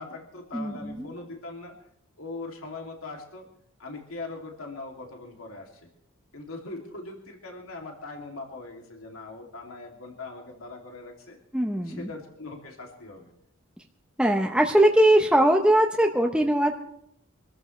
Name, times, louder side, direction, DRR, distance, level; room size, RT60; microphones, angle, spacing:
voice 1, 0.0-1.8 2.2-3.5 3.8-5.9 6.3-11.4 11.8-13.3, left 3 dB, 85° left, 1 dB, 2.8 m, -41 dB
voice 2, 0.5-1.1 11.5-12.1 14.2-16.8, right 1 dB, 5° right, 2 dB, 0.9 m, -21 dB
25.5 x 14.0 x 3.3 m, 0.74 s
head